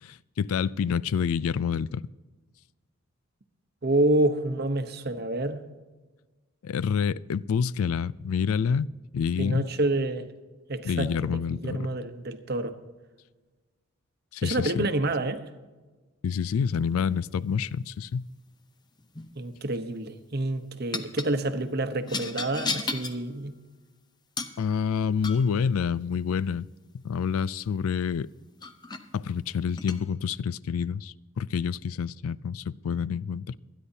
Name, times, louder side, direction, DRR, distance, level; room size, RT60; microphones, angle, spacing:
voice 1, 0.0-2.1 6.6-8.9 9.1-9.7 10.8-11.8 14.3-14.9 16.2-18.3 24.6-26.7 27.0-28.3 29.1-33.6, left 6 dB, 85° left, 0.4 m, -28 dB
voice 2, 3.8-5.6 9.4-10.3 10.7-12.7 14.4-15.4 19.4-23.6, right 2 dB, 50° right, 0.9 m, -28 dB
sound 1, 19.0-19.3 20.9-21.3 22.1-23.2 24.4-24.6 25.2-25.5 27.9-28.0 28.6-29.0 29.8-30.0, left 4 dB, 20° left, 0.6 m, -34 dB
26.0 x 10.0 x 2.8 m
head